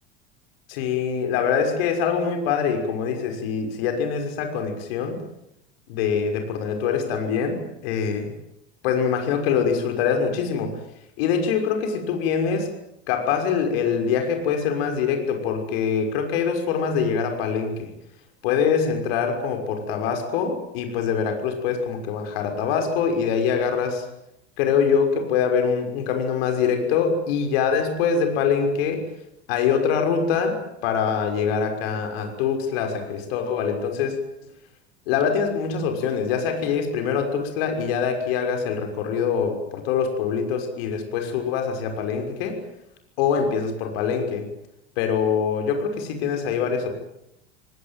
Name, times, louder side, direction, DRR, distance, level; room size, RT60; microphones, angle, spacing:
voice 1, 0.7-5.2 5.9-8.3 8.8-10.8 11.2-12.7 13.1-17.9 18.4-24.0 24.6-29.1 29.5-34.1 35.1-42.6 43.2-44.5 45.0-46.9, left 6 dB, 60° left, 5 dB, 6.1 m, -24 dB
28.0 x 19.5 x 9.3 m, 0.81 s
figure-of-eight pair, 80°, 33 cm